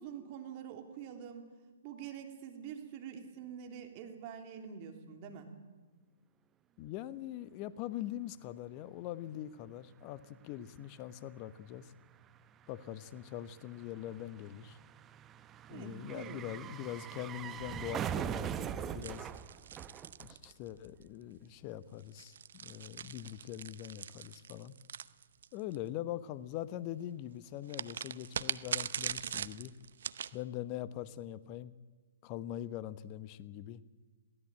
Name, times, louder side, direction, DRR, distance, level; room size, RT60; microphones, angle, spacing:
voice 1, 0.0-1.4 1.8-5.5 15.7-16.7, right 8 dB, 40° right, 4 dB, 3.2 m, -46 dB
voice 2, 6.8-11.9 12.7-14.8 15.7-19.3 20.2-24.7 25.5-29.7 30.3-31.7 32.2-33.8, left 12 dB, 35° left, 15 dB, 1.0 m, -43 dB
sound 1, 10.0-10.1 10.3-20.7 21.0-21.1, right 9 dB, 20° right, 0.8 m, -42 dB
sound 2, 19.0-21.0 22.0-25.8 27.7-30.4, right 8 dB, 65° right, 0.8 m, -41 dB
22.0 x 16.5 x 8.8 m, 1.3 s
hypercardioid pair, 125°, 0 cm